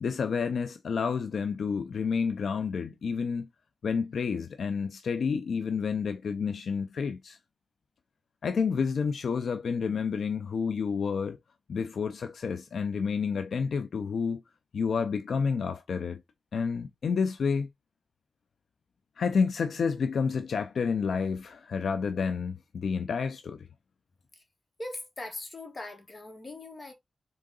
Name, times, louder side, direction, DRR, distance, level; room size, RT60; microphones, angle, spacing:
voice 1, 0.0-3.5 3.8-7.4 8.4-11.4 11.7-14.4 14.7-16.2 16.5-17.7 19.2-23.6, left 5 dB, 80° left, 0.4 m, -29 dB
voice 2, 24.8-26.9, left 2 dB, 35° left, 1.7 m, -40 dB
3.8 x 3.7 x 3.8 m
cardioid pair, 80°, 0 cm